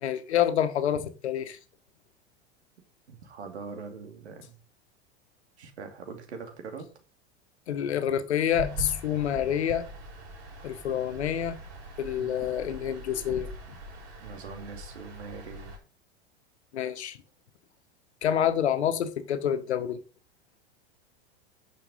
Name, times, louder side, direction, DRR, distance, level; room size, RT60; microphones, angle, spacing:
voice 1, 0.0-1.6 7.7-9.9 10.6-11.6 12.0-13.5 16.7-17.2 18.2-20.0, left 9 dB, 85° left, 1.5 m, -27 dB
voice 2, 3.1-4.6 5.6-6.9 12.2-12.5 14.2-15.7, right 5 dB, 90° right, 2.8 m, -42 dB
sound 1, 8.5-15.8, right 1 dB, 50° right, 4.8 m, -41 dB
10.0 x 6.7 x 5.3 m
hypercardioid pair, 100°, 32 cm